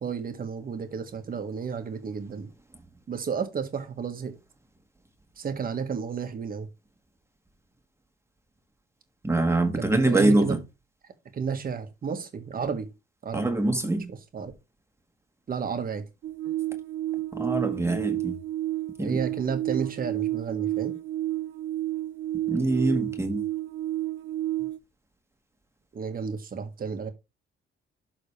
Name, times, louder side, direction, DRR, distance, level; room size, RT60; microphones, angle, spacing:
voice 1, 0.0-2.5 3.1-4.4 5.4-6.7 9.7-10.6 11.3-12.9 13.2-13.5 14.1-14.5 15.5-16.0 19.0-20.9 25.9-27.1, right 6 dB, 45° right, 1.6 m, -32 dB
voice 2, 9.2-10.6 13.3-14.1 17.4-18.3 19.0-19.2 22.5-23.4, right 2 dB, 15° right, 1.6 m, -24 dB
sound 1, 16.2-24.8, right 15 dB, 65° right, 0.5 m, -31 dB
12.0 x 4.0 x 3.3 m
cardioid pair, 90°, 20 cm